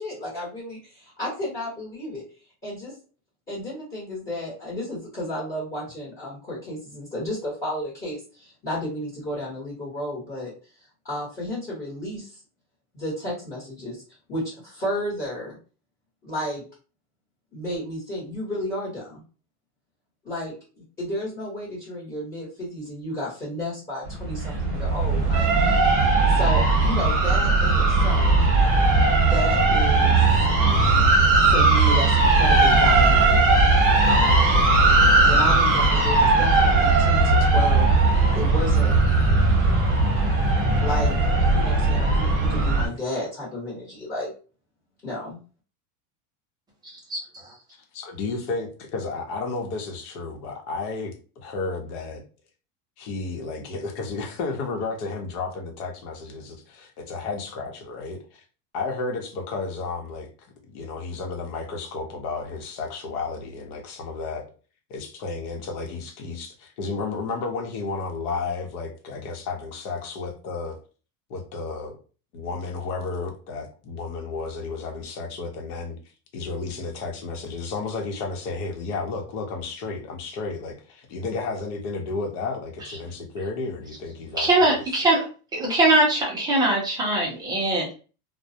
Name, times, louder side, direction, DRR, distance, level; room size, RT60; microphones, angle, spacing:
voice 1, 0.0-2.2 2.6-2.9 3.5-10.5 11.0-12.4 12.9-14.0 14.3-15.6 16.2-16.6 17.5-19.2 20.2-31.1 31.4-33.7 34.0-34.7 35.2-37.9 38.3-38.9 40.8-41.2 41.5-44.3 45.0-45.4, left 1 dB, 20° left, -8 dB, 1.1 m, -32 dB
sound 1, 24.1-42.9, right 3 dB, 30° right, 0.7 m, -18 dB
voice 2, 47.1-47.5 82.8-83.0 84.4-85.3 85.5-87.9, right 2 dB, 10° right, -3 dB, 0.3 m, -22 dB
voice 3, 47.9-51.1 51.4-52.2 53.0-58.4 58.7-60.3 60.7-64.4 64.9-70.8 71.3-71.9 72.3-76.0 76.3-84.8, left 3 dB, 70° left, 3 dB, 0.9 m, -32 dB
2.2 x 2.1 x 2.7 m, 0.37 s
supercardioid pair, 145°, 47 cm